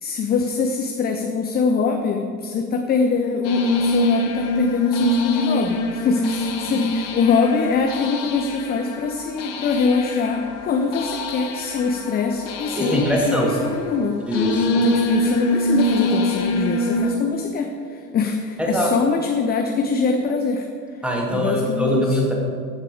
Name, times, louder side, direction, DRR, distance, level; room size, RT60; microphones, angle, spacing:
voice 1, 0.0-14.2 14.7-21.0 21.3-22.2, left 5 dB, 20° left, 4 dB, 0.7 m, -23 dB
sound 1, 3.4-17.1, left 1 dB, 50° left, 1.9 m, -25 dB
voice 2, 12.8-13.6 14.3-14.8 18.6-19.1 21.0-22.3, equal, ahead, -1 dB, 2.4 m, -22 dB
15.0 x 7.5 x 4.9 m, 2.2 s
figure-of-eight pair, 80°, 49 cm